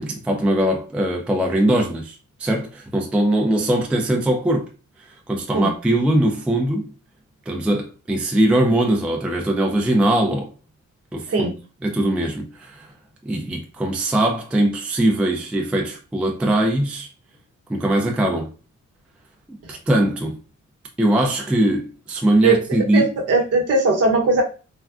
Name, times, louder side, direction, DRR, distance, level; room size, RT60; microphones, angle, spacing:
voice 1, 0.0-4.7 5.0-6.9 7.5-10.5 11.1-11.5 11.8-12.9 13.3-17.1 17.7-18.5 19.5-20.4 21.0-23.1, right 1 dB, 5° right, 0.3 m, -21 dB
voice 2, 22.9-24.4, right 3 dB, 50° right, 0.9 m, -18 dB
3.4 x 2.1 x 2.4 m
cardioid pair, 125°, 31 cm